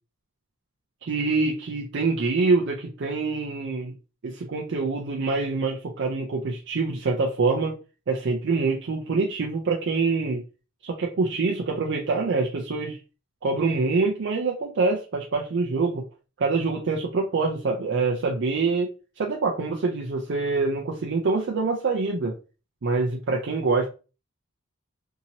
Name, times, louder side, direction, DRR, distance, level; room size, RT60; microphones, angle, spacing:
voice 1, 1.0-3.9 4.2-7.8 8.1-10.4 10.8-13.0 13.4-16.1 16.4-22.3 22.8-23.9, right 3 dB, 60° right, 0 dB, 0.5 m, -25 dB
2.8 x 2.7 x 2.7 m, 0.33 s
head